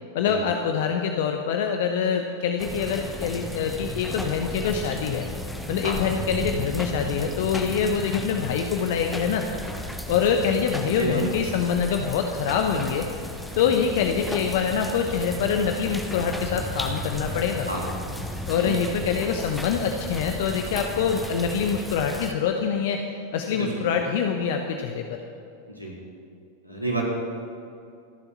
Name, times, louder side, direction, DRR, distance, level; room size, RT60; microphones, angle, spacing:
voice 1, 0.1-5.3 5.7-9.4 10.1-13.1 13.5-17.7 18.5-23.0 23.3-25.2, left 7 dB, 55° left, 4 dB, 1.0 m, -25 dB
sound 1, 2.6-22.3, left 1 dB, 5° left, 1.5 m, -34 dB
voice 2, 18.5-19.0 23.5-23.9 25.8-25.9 26.6-27.0, right 2 dB, 90° left, -4 dB, 4.0 m, -30 dB
27.5 x 11.0 x 4.3 m, 2.6 s
figure-of-eight pair, 90°, 0 cm